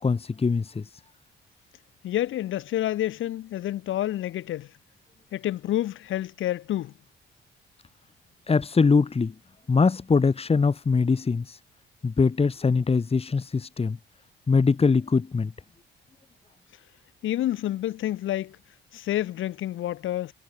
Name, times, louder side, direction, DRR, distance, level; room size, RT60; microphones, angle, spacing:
voice 1, 0.0-0.9 8.5-9.3 9.7-11.6 12.0-14.0 14.5-15.5, left 4 dB, 30° left, 2.5 m, -22 dB
voice 2, 2.0-4.7 5.3-6.9 17.2-18.6 18.9-20.3, left 13 dB, 80° left, 8.0 m, -28 dB
cardioid pair, 90°, 20 cm